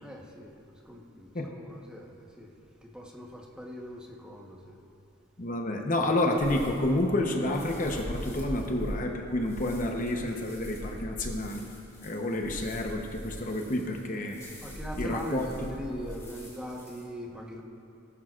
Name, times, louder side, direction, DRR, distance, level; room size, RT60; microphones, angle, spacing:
voice 1, 0.0-2.5 2.8-4.8 14.6-17.6, equal, 5° right, -2 dB, 1.1 m, -41 dB
voice 2, 5.4-11.6 12.0-14.4 15.0-15.5, left 1 dB, 40° left, 2 dB, 0.9 m, -29 dB
sound 1, 6.4-17.0, equal, 15° left, 3.1 m, -42 dB
19.0 x 12.5 x 2.5 m, 2.5 s
head